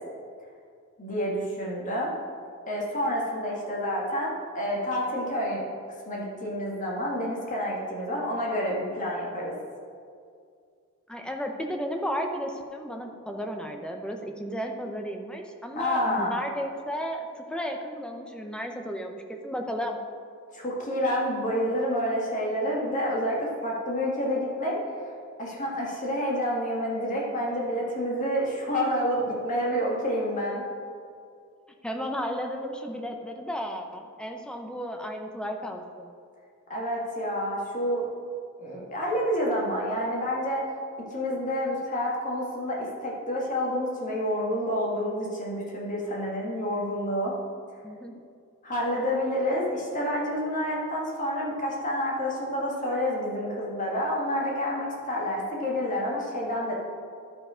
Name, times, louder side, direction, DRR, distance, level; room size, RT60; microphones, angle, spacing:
voice 1, 1.0-2.1 2.7-5.6 6.0-9.5 15.7-16.4 20.5-24.8 25.4-30.6 36.7-38.1 38.6-40.7 41.1-47.3 48.6-56.7, equal, 35° left, -3 dB, 1.8 m, -28 dB
voice 2, 11.1-20.0 31.8-36.1 47.8-48.2, equal, 5° left, 3 dB, 0.6 m, -33 dB
11.0 x 4.9 x 5.0 m, 2.2 s
head